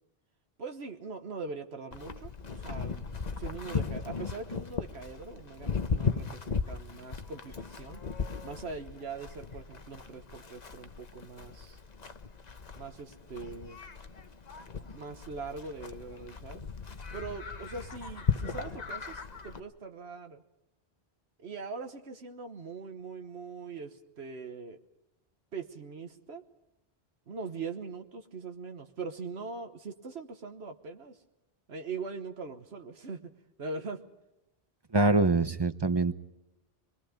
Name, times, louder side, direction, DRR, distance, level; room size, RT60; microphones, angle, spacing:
voice 1, 0.6-3.1 3.3-8.0 8.4-11.8 12.8-13.8 14.8-16.6 17.1-20.4 21.4-24.8 25.5-26.4 27.3-31.2 31.7-33.3 33.6-34.0, right 4 dB, 75° right, 6 dB, 1.5 m, -42 dB
Livestock farm animals working animals, 1.9-19.6, left 5 dB, 40° left, 1.1 m, -37 dB
voice 2, 34.9-36.1, right 2 dB, 25° right, 12 dB, 0.8 m, -24 dB
25.5 x 21.5 x 5.2 m, 0.90 s
omnidirectional pair, 1.1 m